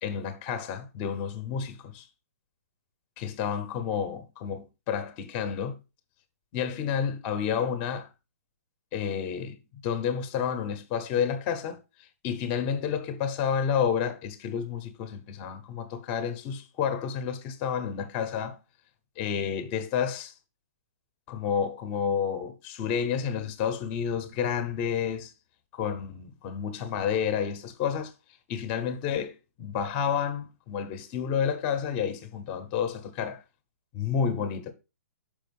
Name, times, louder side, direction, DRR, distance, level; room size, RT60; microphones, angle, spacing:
voice 1, 0.0-2.1 3.2-5.8 6.5-8.1 8.9-9.6 9.8-11.8 12.2-18.6 19.2-20.3 21.3-25.3 25.7-28.1 28.5-33.4 33.9-34.7, left 7 dB, 20° left, 0.8 m, -30 dB
5.9 x 5.0 x 5.3 m
hypercardioid pair, 165°, 9 cm